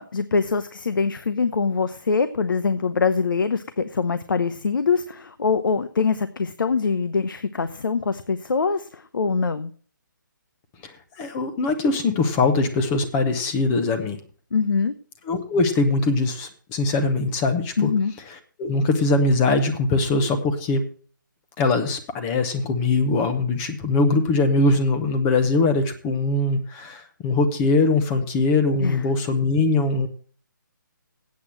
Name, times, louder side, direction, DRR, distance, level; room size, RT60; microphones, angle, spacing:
voice 1, 0.0-9.7 14.5-14.9 17.8-18.1 28.8-29.0, left 5 dB, 75° left, 11 dB, 0.8 m, -23 dB
voice 2, 10.8-14.2 15.3-17.9 18.6-20.8 21.6-30.1, left 3 dB, 10° left, 7 dB, 0.8 m, -22 dB
8.6 x 7.9 x 7.6 m, 0.43 s
hypercardioid pair, 170°, 11 cm